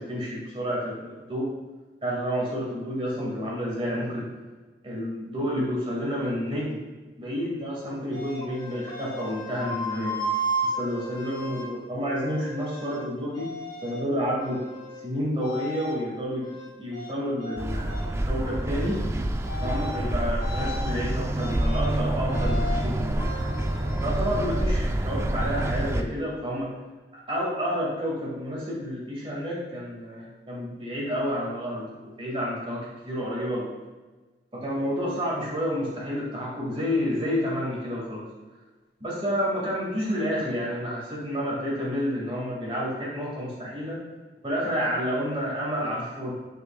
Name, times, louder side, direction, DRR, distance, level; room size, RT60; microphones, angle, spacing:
voice 1, 0.0-1.5 2.0-4.3 4.8-6.8 7.2-10.2 10.6-13.5 13.8-14.7 15.0-17.9 18.2-19.0 19.6-23.3 24.0-26.7 27.1-33.7 34.5-38.2 39.0-44.0 44.4-46.3, equal, 30° right, -5 dB, 2.1 m, -30 dB
sound 1, 8.1-11.7 12.2-13.0 13.3-14.1 14.4-15.0 15.4-16.0 16.4-17.6 17.9-18.1 18.4-19.0 19.4-20.0 20.4-20.9 21.4-21.9 22.3-22.8 23.2-24.8, right 1 dB, 25° left, 1.1 m, -35 dB
sound 2, 17.6-26.0, right 1 dB, 15° right, 0.3 m, -27 dB
8.1 x 6.5 x 2.3 m, 1.3 s
head